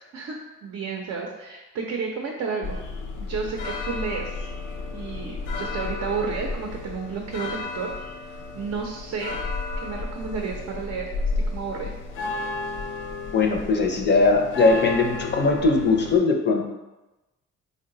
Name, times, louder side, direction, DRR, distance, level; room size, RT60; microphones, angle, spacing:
voice 1, 0.1-2.8 3.2-4.3 4.9-7.9 8.2-9.4 9.8-11.1 11.5-11.9, right 5 dB, 50° right, 0 dB, 0.6 m, -31 dB
sound 1, 2.6-16.2, left 3 dB, 80° left, 0.5 m, -32 dB
voice 2, 13.3-16.7, left 3 dB, 35° left, 3 dB, 0.6 m, -20 dB
3.7 x 2.2 x 3.7 m, 1.1 s
cardioid pair, 90°, 30 cm